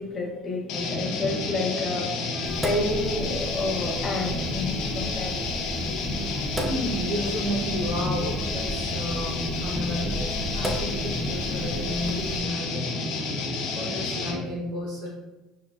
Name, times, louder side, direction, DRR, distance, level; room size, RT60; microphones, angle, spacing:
voice 1, 0.0-5.6, left 2 dB, 35° left, -1 dB, 0.8 m, -30 dB
sound 1, 0.7-14.4, left 3 dB, 65° left, 0.5 m, -30 dB
Sink (filling or washing), 2.5-12.4, equal, 5° right, 0.5 m, -35 dB
voice 2, 6.5-12.9 13.7-15.1, equal, 70° right, -5 dB, 0.6 m, -32 dB
4.0 x 2.1 x 2.3 m, 1.1 s
hypercardioid pair, 80°, 0 cm